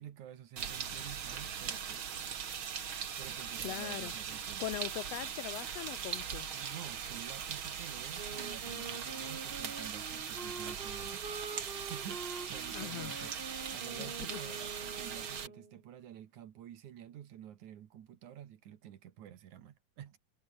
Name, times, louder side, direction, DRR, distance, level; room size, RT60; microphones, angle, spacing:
voice 1, 0.0-2.2 3.2-4.7 6.5-13.3 13.7-20.2, right 10 dB, 75° right, 2.9 m, -50 dB
sound 1, 0.6-15.5, right 8 dB, 45° right, 2.3 m, -40 dB
voice 2, 3.6-4.1 4.6-6.5 12.7-13.3 14.0-14.4, left 16 dB, 90° left, 1.4 m, -41 dB
Wind instrument woodwind instrument, 8.1-15.8, right 4 dB, 25° right, 1.5 m, -46 dB
omnidirectional pair, 3.5 m